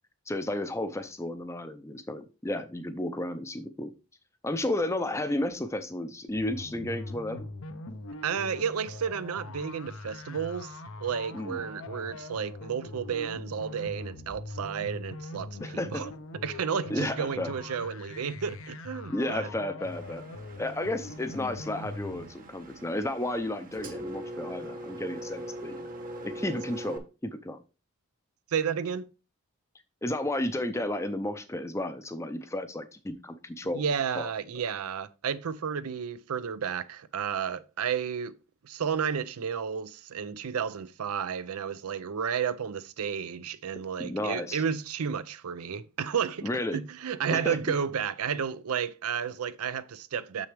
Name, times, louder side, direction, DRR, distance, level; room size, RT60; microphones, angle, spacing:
voice 1, 0.3-3.9 4.4-7.5 11.3-11.6 15.6-16.0 16.9-17.5 19.1-20.2 20.6-25.9 26.2-27.6 30.0-33.8 34.2-34.3 44.0-44.6 46.4-46.8 47.3-47.6, left 1 dB, 10° left, 0.5 m, -32 dB
sound 1, 6.3-22.3, left 2 dB, 60° left, 0.7 m, -42 dB
voice 2, 8.2-16.1 16.4-19.5 28.5-29.1 33.7-38.3 38.6-50.5, right 7 dB, 75° right, 0.5 m, -32 dB
Engine, 19.8-27.0, right 1 dB, 40° right, 1.1 m, -42 dB
6.9 x 6.2 x 3.3 m
head